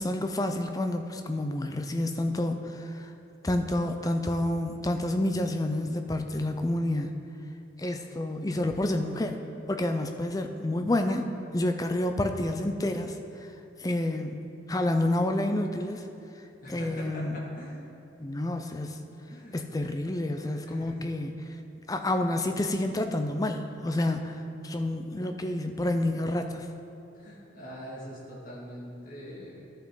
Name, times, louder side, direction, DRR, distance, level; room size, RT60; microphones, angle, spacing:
voice 1, 0.0-3.1 3.4-7.1 7.8-9.4 9.7-11.2 11.5-13.2 13.8-16.0 16.7-17.3 18.2-19.0 19.5-21.3 21.9-24.4 24.6-26.7, left 1 dB, 20° left, 6 dB, 0.5 m, -29 dB
voice 2, 16.6-17.8 19.3-19.6 20.4-21.0 27.1-29.6, equal, 45° left, -5 dB, 2.0 m, -42 dB
13.5 x 6.1 x 3.8 m, 2.7 s
head